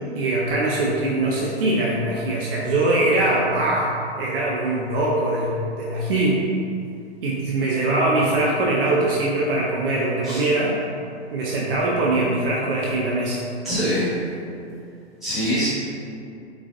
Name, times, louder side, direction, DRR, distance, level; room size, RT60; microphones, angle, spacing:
voice 1, 0.1-3.9 4.2-6.4 7.2-10.8 11.3-13.4, right 2 dB, 55° right, -4 dB, 0.5 m, -22 dB
voice 2, 13.6-14.1 15.2-15.7, equal, ahead, -14 dB, 1.1 m, -23 dB
4.0 x 2.3 x 2.4 m, 2.5 s
figure-of-eight pair, 120°, 34 cm